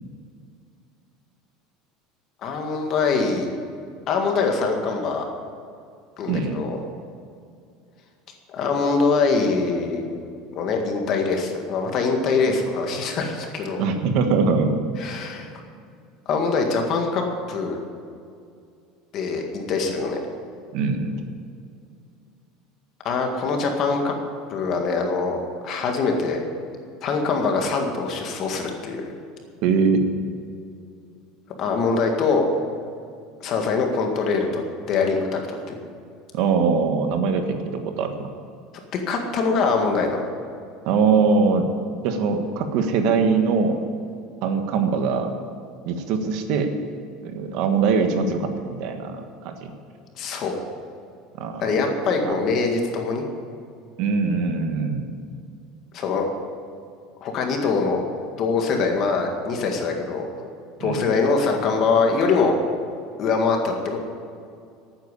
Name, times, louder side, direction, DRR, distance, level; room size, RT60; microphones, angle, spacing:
voice 1, 2.4-3.5 4.1-5.2 6.2-6.8 8.5-10.0 10.5-13.8 15.0-15.5 16.3-17.8 19.1-20.2 23.0-24.1 24.5-25.4 25.6-26.4 27.0-29.1 31.6-32.5 33.4-35.4 35.7-35.8 38.9-40.2 50.2-50.6 51.6-53.3 55.9-56.3 57.2-58.0 58.4-60.3 60.8-62.5 63.2-64.0, left 4 dB, 35° left, 3 dB, 1.9 m, -23 dB
voice 2, 6.3-6.6 13.8-14.7 20.7-21.2 29.6-30.0 36.3-37.6 37.8-38.1 40.8-41.7 42.0-43.8 44.4-45.4 45.8-46.7 47.2-49.7 51.4-51.7 52.2-52.3 54.0-55.1 60.8-61.1, right 5 dB, 55° right, 6 dB, 1.5 m, -22 dB
13.0 x 9.1 x 8.4 m, 2.4 s
cardioid pair, 170°, 0 cm